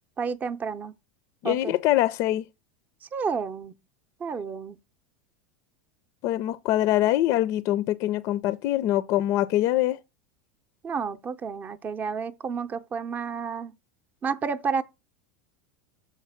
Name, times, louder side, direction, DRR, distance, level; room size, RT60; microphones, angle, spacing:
voice 1, 0.2-0.9 1.4-1.7 3.1-3.7 4.2-4.8 10.8-13.7 14.2-14.8, right 5 dB, 25° right, 0.6 m, -30 dB
voice 2, 1.4-2.4 6.2-10.0, left 14 dB, 50° left, 0.5 m, -24 dB
7.0 x 4.1 x 5.8 m
hypercardioid pair, 110°, 6 cm